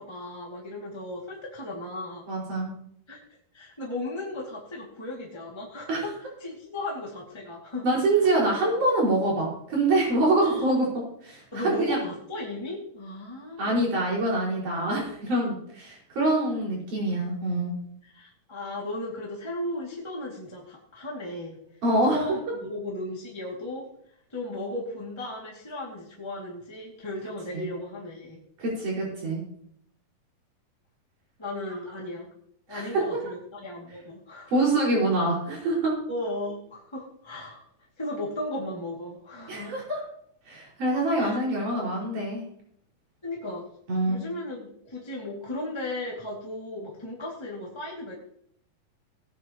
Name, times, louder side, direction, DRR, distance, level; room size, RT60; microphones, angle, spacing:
voice 1, 0.0-2.2 3.1-3.2 3.5-6.1 6.4-7.9 8.1-8.3 10.4-10.7 11.5-13.8 18.0-21.6 22.1-23.9 24.3-28.4 31.4-32.3 32.7-34.7 36.1-37.6 38.0-39.7 41.2-41.4 43.2-43.6 44.0-48.1, left 1 dB, 10° left, -4 dB, 1.6 m, -36 dB
voice 2, 2.3-2.7 5.9-6.0 7.8-10.8 11.2-12.0 13.6-17.7 21.8-22.4 27.5-27.7 28.6-29.4 32.7-33.0 34.5-35.9 39.5-40.0 40.5-42.4 43.9-44.2, right 2 dB, 60° right, -4 dB, 6.6 m, -25 dB
18.5 x 9.2 x 3.0 m, 0.69 s
omnidirectional pair, 4.0 m